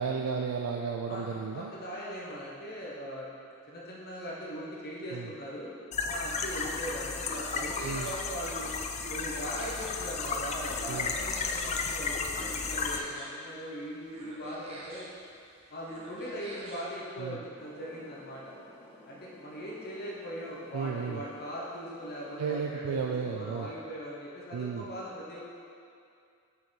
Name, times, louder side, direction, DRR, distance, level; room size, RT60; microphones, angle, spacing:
voice 1, 0.0-1.7 5.1-5.3 7.8-8.1 10.9-11.1 17.2-17.4 20.7-21.2 22.4-23.7 24.5-24.8, right 6 dB, 80° right, 1 dB, 0.3 m, -33 dB
voice 2, 1.1-3.3 3.7-5.7 6.1-8.7 9.1-15.1 15.7-18.5 19.1-25.4, equal, 45° left, -5 dB, 0.8 m, -40 dB
sound 1, 5.9-13.0, left 4 dB, 30° left, 0.3 m, -33 dB
sound 2, 6.8-17.0, right 1 dB, 25° right, 0.8 m, -48 dB
sound 3, 17.5-22.7, left 1 dB, 10° left, 1.4 m, -55 dB
6.1 x 4.5 x 3.8 m, 2.4 s
head